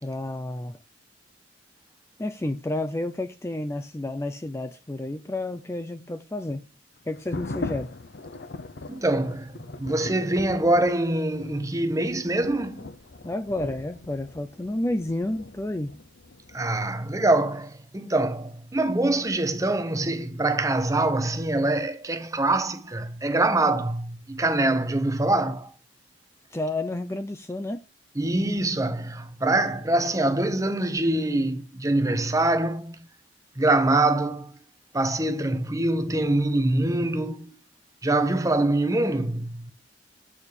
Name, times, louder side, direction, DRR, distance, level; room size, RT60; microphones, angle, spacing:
voice 1, 0.0-0.8 2.2-6.6 7.1-7.9 13.2-16.0 26.5-27.8, left 1 dB, 15° left, 0.4 m, -30 dB
sound 1, 7.1-16.6, left 2 dB, 60° left, 0.7 m, -40 dB
voice 2, 8.9-12.9 16.5-25.7 28.2-33.1 33.6-34.5 34.9-37.6 38.0-39.7, right 2 dB, 20° right, 0.8 m, -24 dB
8.6 x 4.5 x 6.8 m
head